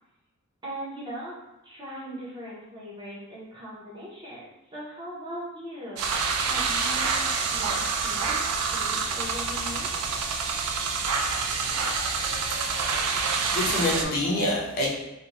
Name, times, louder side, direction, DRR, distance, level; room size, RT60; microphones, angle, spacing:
voice 1, 0.6-1.3 1.6-6.0 6.4-9.9, equal, 20° right, -7 dB, 0.7 m, -39 dB
sound 1, 6.0-14.1, right 5 dB, 80° right, 0.3 m, -27 dB
voice 2, 13.5-14.9, left 1 dB, 40° left, -5 dB, 0.6 m, -26 dB
2.5 x 2.2 x 2.9 m, 1.0 s
head